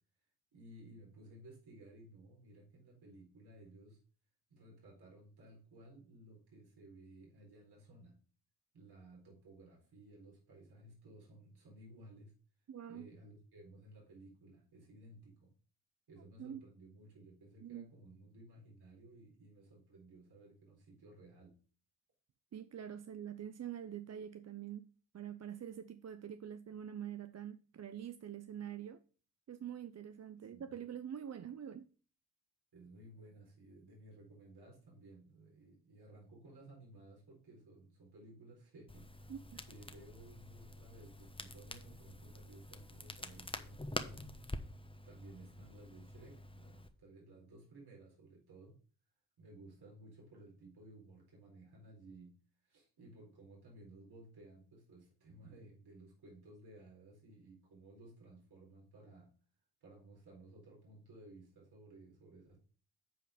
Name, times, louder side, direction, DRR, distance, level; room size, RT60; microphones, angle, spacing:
voice 1, 0.5-4.0 4.5-8.2 8.7-12.3 12.9-15.5 16.1-21.6 30.5-30.8 32.7-39.3 39.6-44.4 45.0-48.7 49.4-52.3 52.6-59.3 59.8-62.6, right 2 dB, 70° right, 4.1 m, -57 dB
voice 2, 12.7-13.1 16.4-16.6 17.6-17.9 22.5-29.0 29.5-31.9 39.3-39.6, right 9 dB, 40° right, 0.6 m, -45 dB
Crackle, 38.9-46.9, left 2 dB, 15° left, 1.1 m, -47 dB
8.5 x 4.6 x 5.1 m
supercardioid pair, 45°, 40 cm